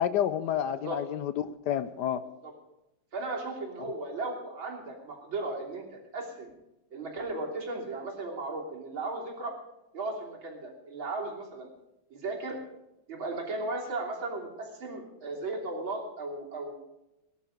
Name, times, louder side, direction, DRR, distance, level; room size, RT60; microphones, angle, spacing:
voice 1, 0.0-2.2, left 10 dB, 70° left, 13 dB, 1.2 m, -29 dB
voice 2, 0.7-1.0 2.4-2.5 3.1-6.5 6.9-9.5 9.9-11.7 12.1-12.6 13.1-16.7, right 2 dB, 85° right, -2 dB, 4.1 m, -36 dB
19.0 x 11.0 x 5.1 m, 0.94 s
omnidirectional pair, 2.1 m